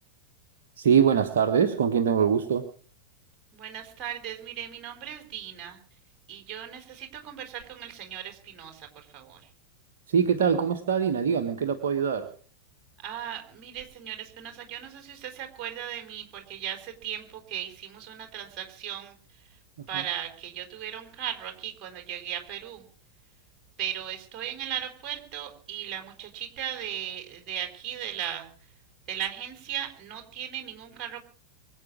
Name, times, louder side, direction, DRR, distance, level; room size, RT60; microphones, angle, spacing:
voice 1, 0.8-2.7 10.1-12.3 19.9-20.0, right 7 dB, 60° right, 6 dB, 1.3 m, -23 dB
voice 2, 3.5-5.8 6.3-9.4 13.0-19.1 19.9-22.8 23.8-28.5 29.1-31.2, right 10 dB, 35° right, 5 dB, 4.0 m, -37 dB
24.0 x 8.4 x 6.2 m, 0.43 s
figure-of-eight pair, 90°, 0 cm